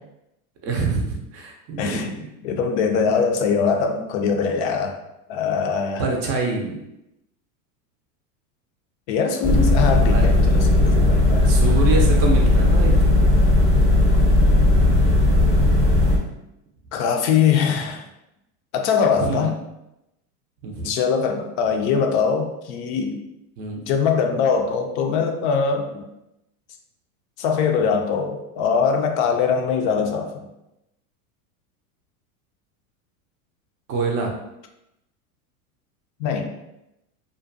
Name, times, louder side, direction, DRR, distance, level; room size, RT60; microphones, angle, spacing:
voice 1, 0.6-2.0 6.0-6.8 10.1-10.3 11.4-13.2 19.2-19.5 20.6-20.9 23.6-23.8 33.9-34.3, right 3 dB, 35° right, 1 dB, 0.5 m, -25 dB
voice 2, 1.8-2.2 2.4-4.9 5.3-6.1 9.1-11.5 16.9-18.0 18.7-19.5 20.8-23.2 23.8-26.1 27.4-30.5 36.2-36.5, left 6 dB, 55° left, 4 dB, 0.4 m, -22 dB
sound 1, 9.4-16.2, left 1 dB, 5° left, 0.6 m, -16 dB
2.5 x 2.2 x 2.5 m, 0.88 s
supercardioid pair, 120°, 43 cm